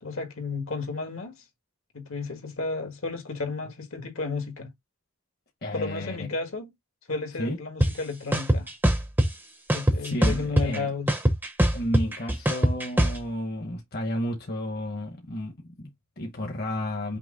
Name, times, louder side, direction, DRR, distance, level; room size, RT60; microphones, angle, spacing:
voice 1, 0.0-1.4 1.9-4.7 5.7-6.7 7.1-8.7 9.7-11.1, left 3 dB, 70° left, 1.5 m, -33 dB
voice 2, 5.6-6.3 7.4-7.6 10.0-10.9 11.7-17.2, left 1 dB, 45° left, 1.1 m, -32 dB
sound 1, 7.8-7.9 8.3-9.3 9.7-10.8 11.1-13.2, right 1 dB, 10° right, 0.7 m, -21 dB
5.8 x 2.0 x 3.7 m
head